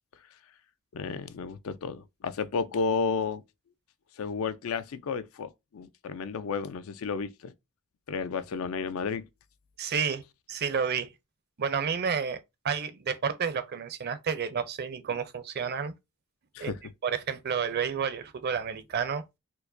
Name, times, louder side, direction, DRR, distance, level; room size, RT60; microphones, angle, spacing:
voice 1, 0.9-3.4 4.2-7.5 8.1-9.3 16.5-16.8, left 5 dB, 70° left, 0.4 m, -32 dB
voice 2, 9.8-10.2 10.5-11.1 11.6-15.9 16.6-16.7 17.0-19.2, right 6 dB, 50° right, 0.5 m, -30 dB
4.4 x 2.2 x 2.5 m
head